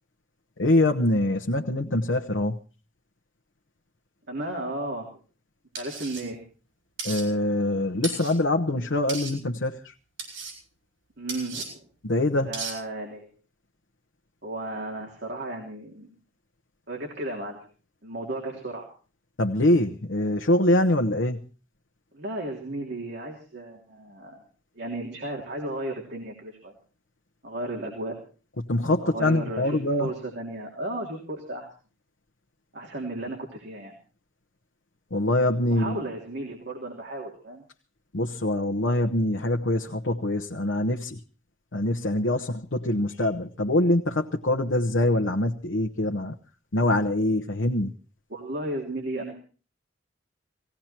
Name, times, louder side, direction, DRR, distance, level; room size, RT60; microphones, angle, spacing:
voice 1, 0.6-2.6 7.0-9.8 12.0-12.5 19.4-21.4 28.7-30.1 35.1-36.0 38.1-41.2 41.7-46.3 46.7-47.9, left 1 dB, 70° left, 2 dB, 1.0 m, -24 dB
voice 2, 4.3-5.1 5.7-6.4 11.2-11.9 12.4-13.3 14.4-16.1 16.9-17.6 18.0-18.9 22.1-24.4 24.7-26.7 27.4-28.1 29.0-31.7 32.7-33.9 35.7-37.6 48.3-49.3, right 1 dB, 60° right, 0 dB, 3.2 m, -34 dB
sound 1, 5.7-6.2 7.0-7.2 8.0-8.3 9.1-9.3 10.2-10.5 11.3-11.7 12.5-12.7, right 3 dB, 90° right, 6.9 m, -35 dB
18.5 x 17.0 x 4.4 m, 0.39 s
head